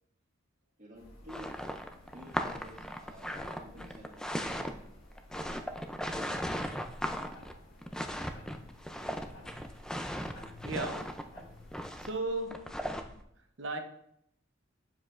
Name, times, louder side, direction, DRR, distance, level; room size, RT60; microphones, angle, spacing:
voice 1, 0.8-1.7 2.1-4.8, equal, 35° right, 2.0 m, -52 dB
sound 1, 0.9-12.2, left 2 dB, 80° left, 2.6 m, -55 dB
sound 2, 1.3-13.2, equal, 5° left, 0.4 m, -37 dB
voice 2, 10.6-11.3 12.0-12.9 13.6-13.8, right 2 dB, 65° right, 0.9 m, -36 dB
9.7 x 7.1 x 2.5 m
head